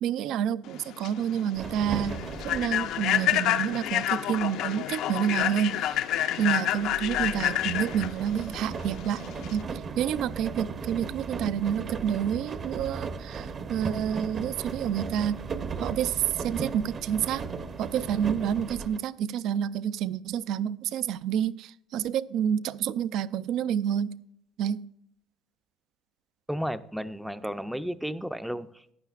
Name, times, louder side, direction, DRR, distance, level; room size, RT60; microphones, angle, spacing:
voice 1, 0.0-6.0 6.4-9.2 9.5-15.4 15.8-17.5 17.8-24.2 24.6-24.9, right 9 dB, 60° right, 0.4 m, -29 dB
Human voice / Train, 0.7-9.6, left 12 dB, 65° left, 0.6 m, -28 dB
sound 1, 1.5-3.5 3.7-19.0, right 5 dB, 35° right, 0.7 m, -37 dB
voice 2, 26.5-28.9, equal, ahead, 0.4 m, -33 dB
15.0 x 10.5 x 2.4 m
cardioid pair, 150°, 0 cm